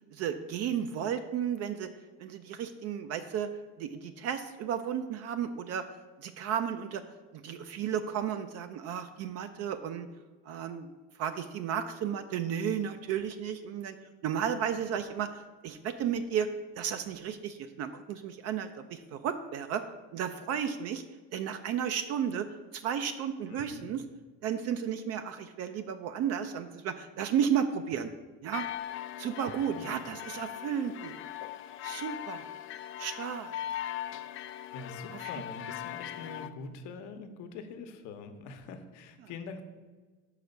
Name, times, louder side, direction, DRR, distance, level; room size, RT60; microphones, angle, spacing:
voice 1, 0.2-1.9 2.2-3.5 3.8-5.8 6.2-7.0 7.4-10.1 10.5-10.9 11.2-13.9 14.2-15.3 15.6-16.5 16.8-19.8 20.1-21.0 21.3-22.5 22.8-24.0 24.4-28.1 28.4-28.6 29.2-31.2 31.8-32.5 33.0-33.5, right 8 dB, 55° right, 8 dB, 0.5 m, -33 dB
voice 2, 23.5-23.9 29.7-30.0 34.7-39.6, left 4 dB, 75° left, 7 dB, 1.0 m, -44 dB
sound 1, 28.5-36.5, left 12 dB, 45° left, 0.4 m, -40 dB
5.9 x 4.9 x 6.5 m, 1.4 s
cardioid pair, 130°, 30 cm